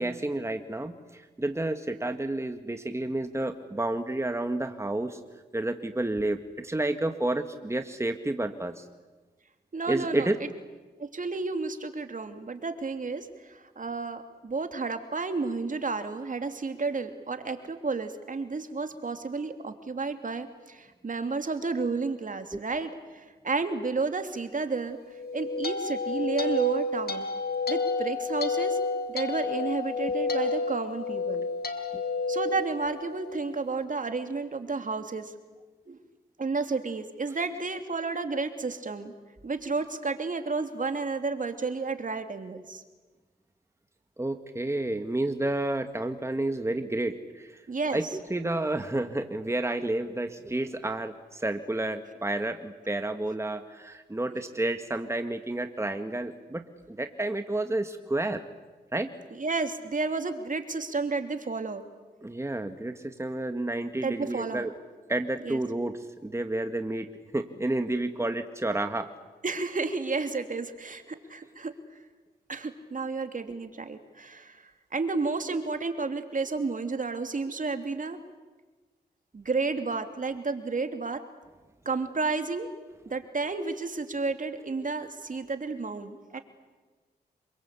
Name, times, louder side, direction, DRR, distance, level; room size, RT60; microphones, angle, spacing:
voice 1, 0.0-5.2 5.5-8.9 9.9-10.4 22.5-22.6 31.9-32.0 44.2-47.6 47.9-58.4 58.9-59.1 62.2-64.7 65.1-69.1, right 2 dB, 15° right, 7 dB, 2.0 m, -30 dB
voice 2, 9.7-10.5 11.0-25.0 25.3-27.3 27.7-28.8 29.1-31.5 32.3-35.3 35.9-36.0 36.4-39.1 39.4-42.8 47.7-48.0 59.3-61.8 64.0-64.7 65.4-65.6 69.4-71.7 72.5-78.2 79.3-81.2 81.8-82.7 83.1-86.4, right 4 dB, 45° right, 7 dB, 3.1 m, -31 dB
sound 1, 25.1-33.5, left 3 dB, 60° left, 3.3 m, -30 dB
27.0 x 23.5 x 8.5 m, 1.3 s
cardioid pair, 50°, 18 cm